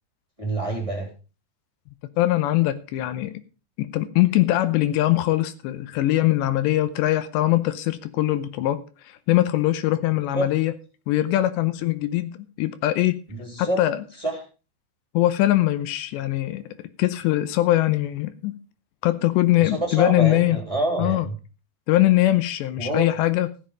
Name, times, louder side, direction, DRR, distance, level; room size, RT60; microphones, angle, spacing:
voice 1, 0.4-1.1 10.3-10.5 13.4-13.8 14.2-14.4 19.6-21.3 22.8-23.1, right 1 dB, 10° right, -1 dB, 2.8 m, -27 dB
voice 2, 2.2-3.3 3.8-10.7 11.1-13.2 13.6-14.0 15.1-16.7 17.0-18.6 19.0-20.6 21.0-21.3 21.9-23.5, left 15 dB, 80° left, 12 dB, 2.9 m, -22 dB
14.5 x 7.6 x 5.1 m, 0.34 s
omnidirectional pair, 5.1 m